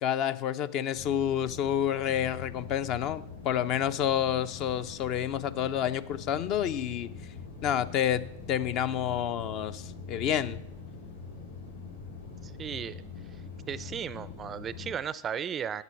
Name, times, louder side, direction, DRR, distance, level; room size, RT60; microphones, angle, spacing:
voice 1, 0.0-7.1 7.6-10.6, left 10 dB, 40° left, 14 dB, 0.5 m, -29 dB
sound 1, 1.0-14.9, left 4 dB, 75° left, 3.1 m, -43 dB
voice 2, 12.4-13.0 13.7-15.8, right 8 dB, 25° right, 18 dB, 0.4 m, -35 dB
8.1 x 7.8 x 7.2 m, 0.75 s
figure-of-eight pair, 90°, 0 cm